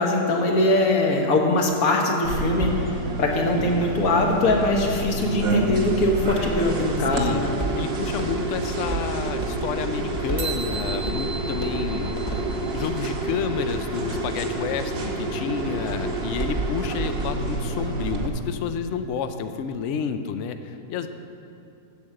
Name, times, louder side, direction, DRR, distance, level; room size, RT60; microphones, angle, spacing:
voice 1, 0.0-2.9 3.2-7.5, left 2 dB, 55° left, 1 dB, 1.5 m, -22 dB
sound 1, 2.2-18.3, right 2 dB, 45° right, 1.0 m, -28 dB
Walk footsteps, 5.7-13.7, right 2 dB, 25° left, 0.7 m, -36 dB
voice 2, 7.1-7.5 7.8-12.4 12.7-21.1, left 7 dB, 85° left, 9 dB, 0.6 m, -30 dB
sound 2, 10.4-13.0, right 5 dB, 75° right, 0.5 m, -36 dB
8.5 x 6.7 x 7.5 m, 2.7 s
omnidirectional pair, 1.8 m